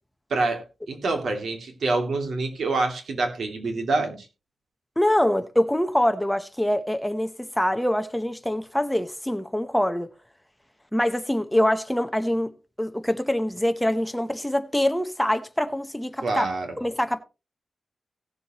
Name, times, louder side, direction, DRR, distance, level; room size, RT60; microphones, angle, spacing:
voice 1, 0.3-4.3 16.2-16.7, right 3 dB, 80° right, 2.6 m, -26 dB
voice 2, 5.0-10.1 10.9-12.5 12.8-16.5 16.8-17.2, left 1 dB, 5° left, 0.8 m, -24 dB
17.5 x 7.0 x 3.0 m
wide cardioid pair, 110°, 0 cm